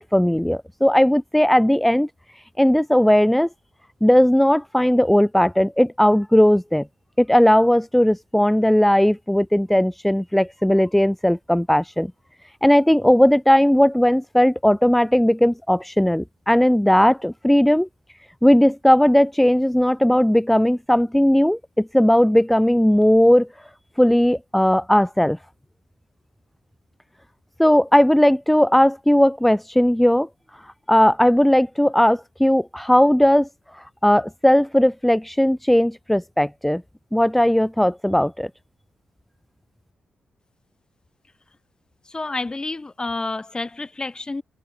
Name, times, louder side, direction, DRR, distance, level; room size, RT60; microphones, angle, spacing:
voice 1, 0.0-2.1 2.6-3.5 4.0-6.9 7.2-12.1 12.6-17.9 18.4-23.5 24.0-25.4 27.6-30.3 30.9-33.5 34.0-36.8 37.1-38.5, equal, 5° left, 0.7 m, -17 dB
voice 2, 42.0-44.4, left 3 dB, 30° left, 4.0 m, -29 dB
cardioid pair, 60°, 3 cm